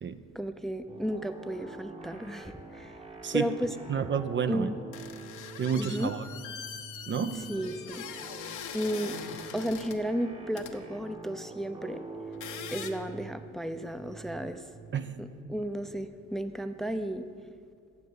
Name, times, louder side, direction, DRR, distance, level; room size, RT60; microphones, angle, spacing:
voice 1, 0.3-2.9 3.3-3.7 4.5-4.8 5.7-6.1 7.5-8.0 8.7-9.2 9.5-12.0 12.7-14.6 15.2-17.2, equal, ahead, 9 dB, 0.6 m, -33 dB
sound 1, 0.9-17.4, right 3 dB, 20° right, 1.2 m, -47 dB
voice 2, 3.2-3.5 3.9-4.7 5.6-6.3 7.1-7.5 14.9-15.2, right 7 dB, 40° right, 10 dB, 0.6 m, -30 dB
sound 2, 4.9-10.0 10.6-10.7 12.2-12.9, left 8 dB, 80° left, 1.1 m, -42 dB
14.5 x 5.3 x 9.6 m, 2.2 s
cardioid pair, 90°, 30 cm